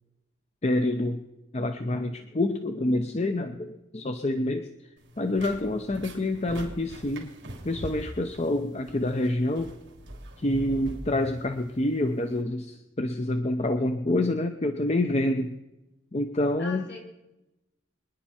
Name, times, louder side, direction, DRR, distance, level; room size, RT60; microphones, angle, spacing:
voice 1, 0.6-1.2 1.5-4.7 5.2-7.3 7.6-9.8 10.4-15.6 16.1-16.9, left 1 dB, 35° left, 7 dB, 0.7 m, -27 dB
sound 1, 5.0-12.4, right 1 dB, 60° right, 3.2 m, -43 dB
voice 2, 16.6-17.0, left 4 dB, 60° left, -1 dB, 4.0 m, -42 dB
25.0 x 10.5 x 4.3 m, 0.97 s
head